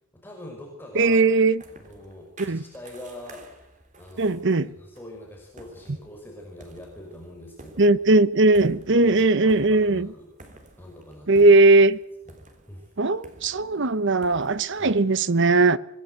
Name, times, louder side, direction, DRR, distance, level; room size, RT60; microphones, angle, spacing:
voice 1, 0.1-1.2 1.7-7.9 8.9-10.3 10.8-11.5 12.7-12.9 14.8-14.9, left 1 dB, 10° left, 5.2 m, -43 dB
voice 2, 0.9-1.6 2.4-2.6 4.2-4.7 7.8-10.1 11.3-12.0 13.0-15.8, right 2 dB, 55° right, 0.9 m, -18 dB
sound 1, 1.1-14.9, right 2 dB, 35° right, 3.5 m, -51 dB
26.5 x 18.0 x 8.0 m
head